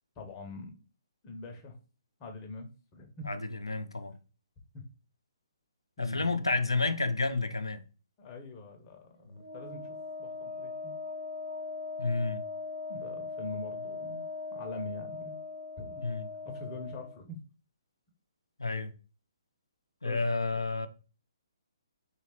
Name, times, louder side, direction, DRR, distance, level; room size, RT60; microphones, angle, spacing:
voice 1, 0.2-0.8 1.2-1.7 2.2-3.3 4.7-4.8 6.0-6.5 8.2-9.2 9.5-10.9 12.9-14.2 14.5-15.4 15.8-16.0 16.4-17.4 20.0-20.2, left 2 dB, 25° left, 0.7 m, -43 dB
voice 2, 3.3-4.1 6.0-7.8 9.3-9.4 12.0-12.4 16.0-16.3 18.6-18.9 20.0-20.9, left 3 dB, 75° left, 0.4 m, -30 dB
Wind instrument woodwind instrument, 9.4-17.2, left 4 dB, 50° right, 0.7 m, -40 dB
3.2 x 3.1 x 2.9 m
figure-of-eight pair, 130°, 3 cm